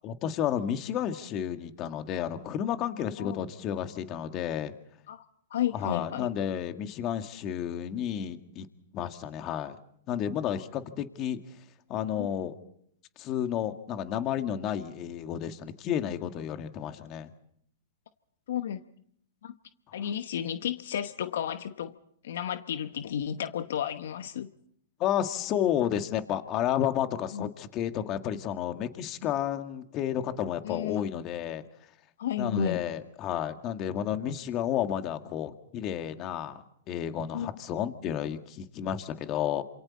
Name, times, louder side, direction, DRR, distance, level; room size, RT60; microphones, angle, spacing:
voice 1, 0.0-4.7 5.7-8.7 8.9-9.8 10.1-11.4 11.9-12.6 13.2-17.3 25.0-31.6 32.4-39.6, left 10 dB, 35° left, 8 dB, 1.8 m, -31 dB
voice 2, 5.5-6.3 12.2-12.3 18.5-18.8 19.4-19.5 19.9-22.0 22.2-24.5 27.3-27.5 30.6-31.0 32.2-32.8 37.3-37.5, left 10 dB, 70° left, 10 dB, 1.0 m, -32 dB
27.5 x 27.5 x 4.2 m, 0.68 s
hypercardioid pair, 125°, 0 cm